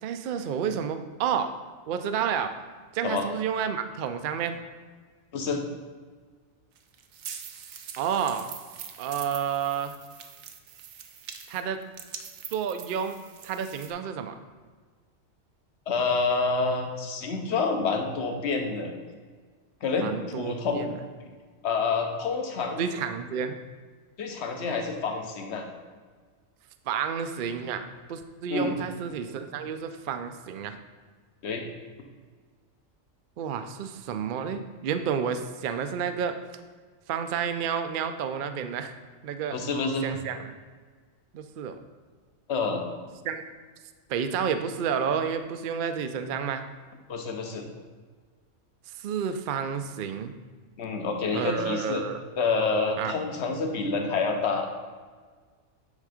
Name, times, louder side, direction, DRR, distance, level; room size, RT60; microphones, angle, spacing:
voice 1, 0.0-1.5 1.9-2.5 2.9-4.6 8.0-8.5 9.0-10.0 11.5-11.8 12.5-14.4 20.0-21.0 22.8-23.6 26.9-30.8 33.4-36.4 37.1-38.9 39.2-39.6 40.0-40.5 41.3-41.8 43.2-43.4 44.1-46.6 48.9-50.3 51.3-52.2 53.0-53.2, right 7 dB, 60° right, 8 dB, 0.5 m, -30 dB
sound 1, 6.8-13.9, right 8 dB, 80° right, 1.0 m, -43 dB
voice 2, 15.9-18.9 19.8-20.9 21.6-22.9 24.2-25.6 28.5-28.8 31.4-31.6 39.5-40.1 42.5-42.8 47.1-47.7 50.8-52.0 52.4-54.7, left 4 dB, 60° left, 3 dB, 1.1 m, -28 dB
8.6 x 3.7 x 5.0 m, 1.5 s
omnidirectional pair, 1.3 m